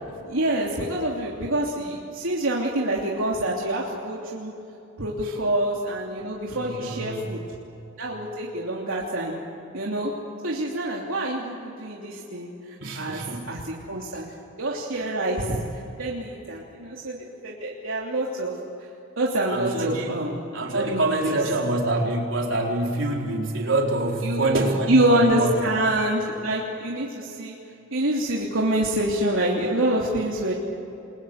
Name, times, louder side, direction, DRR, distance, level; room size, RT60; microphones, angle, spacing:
voice 1, 0.3-4.5 5.0-7.4 8.0-9.4 9.7-10.1 10.4-12.5 12.9-14.3 14.6-15.6 16.0-18.5 19.2-20.4 20.7-21.4 24.2-27.5 27.9-30.5, right 1 dB, 80° right, -3 dB, 3.1 m, -26 dB
voice 2, 6.5-7.3 12.8-13.6 14.1-14.2 19.5-20.2 20.5-25.6, right 2 dB, 65° right, -1 dB, 4.5 m, -26 dB
29.0 x 22.5 x 8.2 m, 2.9 s
head